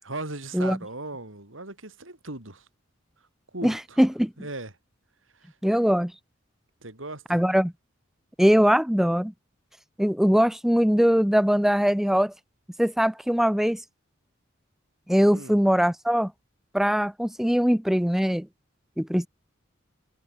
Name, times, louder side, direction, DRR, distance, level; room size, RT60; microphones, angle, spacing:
voice 1, 0.0-2.7 3.5-4.0 4.4-4.7 5.4-5.5 6.8-7.4 15.3-15.6, right 2 dB, 85° right, 5.8 m, -38 dB
voice 2, 3.6-4.3 5.6-6.1 7.3-7.7 8.4-9.3 10.0-12.3 12.8-13.8 15.1-16.3 16.7-18.5 19.0-19.3, equal, ahead, 0.5 m, -21 dB
head